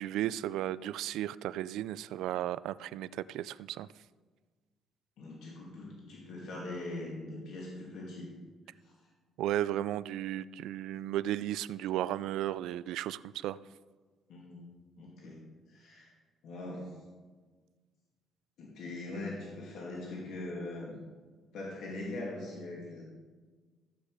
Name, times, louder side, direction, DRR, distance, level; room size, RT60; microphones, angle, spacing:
voice 1, 0.0-3.9 9.4-13.6, right 12 dB, 80° right, 18 dB, 0.3 m, -34 dB
voice 2, 5.2-8.3 8.8-8.9 14.3-14.7 15.0-15.4 15.7-16.1 16.4-16.9 18.6-21.0 21.5-23.0, left 2 dB, 65° left, -3 dB, 2.6 m, -41 dB
14.5 x 8.3 x 4.9 m, 1.4 s
cardioid pair, 165°, 0 cm